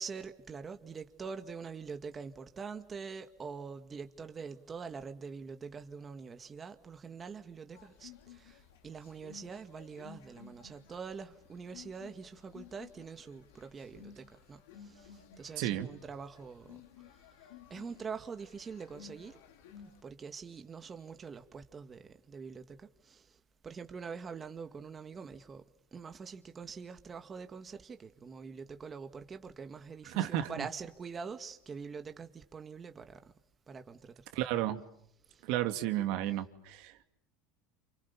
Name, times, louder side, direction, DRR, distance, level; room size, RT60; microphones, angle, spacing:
voice 1, 0.0-16.8 17.1-19.4 19.8-25.6 25.9-33.2 33.7-34.1 35.3-35.4, right 5 dB, 25° right, 2.1 m, -45 dB
sound 1, 7.7-20.0, left 8 dB, 90° left, 4.0 m, -56 dB
voice 2, 30.1-30.7 34.3-34.8 35.5-37.0, right 13 dB, 65° right, 2.6 m, -32 dB
29.0 x 28.5 x 7.1 m
supercardioid pair, 120°, 0 cm